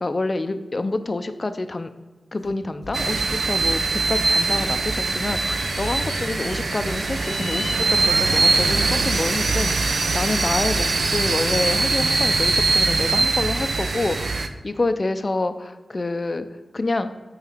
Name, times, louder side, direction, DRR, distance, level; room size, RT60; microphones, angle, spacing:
voice 1, 0.0-1.9 2.3-16.5 16.7-17.1, left 2 dB, 40° left, 10 dB, 0.6 m, -27 dB
Livestock farm animals working animals, 2.3-3.0 3.2-4.0 4.3-9.9 10.2-10.7, left 4 dB, 80° left, 0.9 m, -39 dB
sound 1, 2.9-14.5, right 3 dB, 65° right, 0.6 m, -22 dB
8.3 x 4.8 x 5.0 m, 1.4 s
wide cardioid pair, 75°, 0 cm